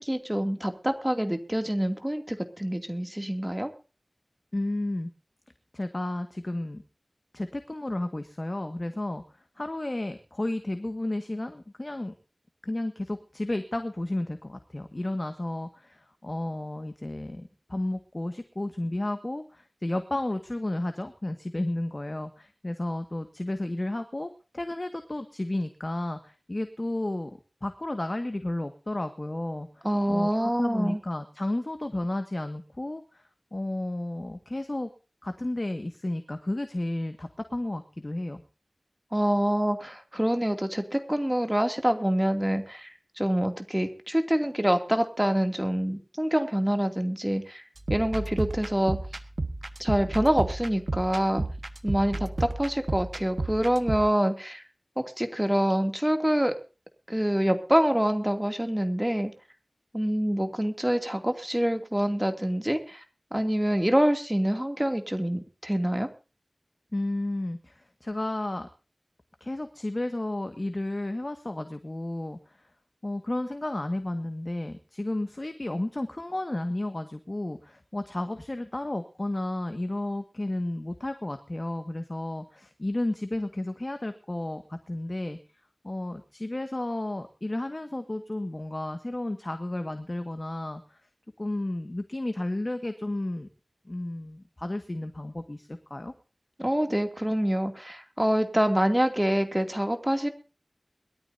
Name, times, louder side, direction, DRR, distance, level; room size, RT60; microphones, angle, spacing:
voice 1, 0.0-3.7 29.8-31.0 39.1-47.6 47.9-49.0 49.8-51.4 51.8-54.6 55.0-56.5 57.1-59.3 59.9-63.0 63.3-66.1 96.6-100.3, equal, 15° right, 6 dB, 2.6 m, -26 dB
voice 2, 4.5-5.1 5.7-6.8 7.3-9.2 9.6-12.1 12.6-33.2 33.5-34.9 35.2-38.4 66.9-68.7 69.4-72.7 73.0-85.4 85.8-91.0 91.4-93.5 93.9-96.1, left 1 dB, 45° left, 7 dB, 1.7 m, -32 dB
sound 1, 47.8-54.1, right 2 dB, 70° right, 1.4 m, -32 dB
22.5 x 13.5 x 2.7 m, 0.34 s
wide cardioid pair, 40°, 0 cm